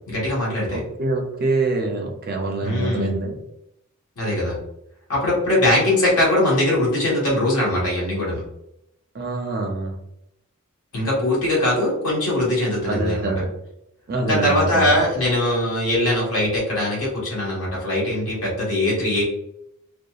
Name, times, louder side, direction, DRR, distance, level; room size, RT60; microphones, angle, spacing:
voice 1, 0.1-0.8 2.6-3.2 4.1-4.6 5.1-8.4 10.9-13.3 14.2-19.2, left 1 dB, 75° left, -5 dB, 1.5 m, -21 dB
voice 2, 0.7-3.4 9.1-9.9 12.9-13.5 14.1-15.0, right 2 dB, 45° right, 2 dB, 0.5 m, -25 dB
2.8 x 2.2 x 2.3 m, 0.80 s
head